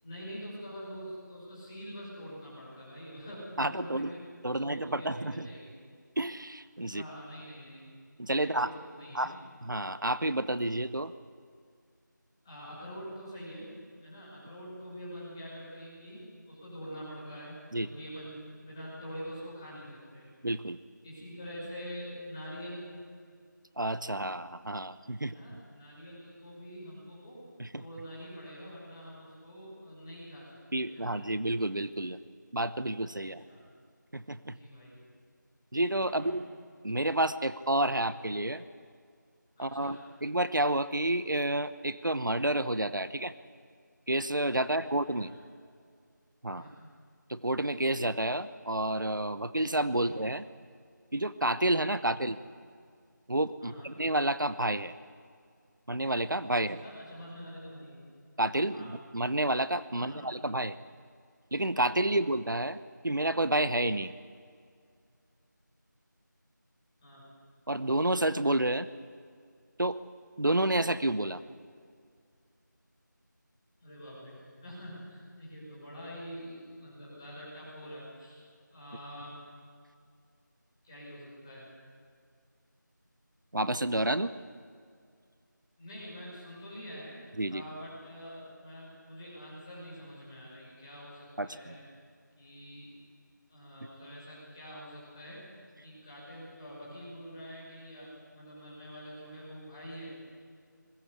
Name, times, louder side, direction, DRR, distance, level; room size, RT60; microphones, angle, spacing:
voice 1, 0.0-4.2 4.5-5.7 6.9-7.9 8.4-9.3 12.4-13.7 14.0-20.3 21.0-22.9 25.2-27.4 27.8-31.2 33.2-33.7 34.4-35.0 36.1-36.4 39.6-40.0 44.7-45.3 46.5-46.9 50.0-50.1 53.6-53.9 56.6-58.0 58.7-58.9 59.9-60.3 62.1-62.2 67.0-67.2 73.8-78.4 78.7-79.3 80.8-81.7 85.8-87.2 87.5-91.8 92.4-92.9 93.5-95.4 95.8-100.1, equal, 15° left, -9 dB, 6.1 m, -45 dB
voice 2, 3.6-4.1 4.4-5.5 6.2-7.0 8.2-8.7 9.1-9.3 9.6-11.1 17.7-17.9 20.4-20.8 23.8-25.4 27.6-27.8 30.7-32.2 32.5-33.4 34.1-34.6 35.7-36.4 36.8-38.6 39.6-43.3 44.1-45.3 46.4-46.6 47.3-50.4 51.1-52.4 53.3-54.9 55.9-56.8 58.4-60.7 61.5-62.8 63.0-64.1 67.7-68.9 69.8-70.0 70.4-71.4 83.5-84.3 87.4-87.6 91.4-91.7, right 1 dB, 75° right, 14 dB, 1.0 m, -30 dB
21.0 x 18.0 x 8.4 m, 2.2 s
figure-of-eight pair, 170°, 11 cm